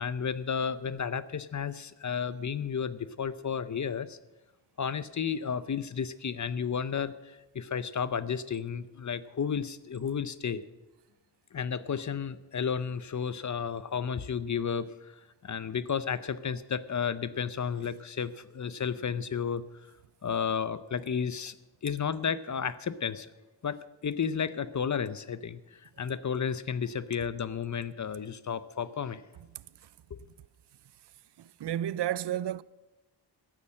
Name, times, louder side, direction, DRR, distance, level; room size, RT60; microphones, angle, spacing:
voice 1, 0.0-4.2 4.8-10.6 11.5-15.1 15.4-19.6 20.2-21.5 21.8-23.3 23.6-29.2 30.1-30.2, left 7 dB, 40° left, 0.6 m, -32 dB
voice 2, 29.5-29.9 31.4-32.6, right 11 dB, 65° right, 0.5 m, -33 dB
14.0 x 8.5 x 7.5 m
wide cardioid pair, 150°, 44 cm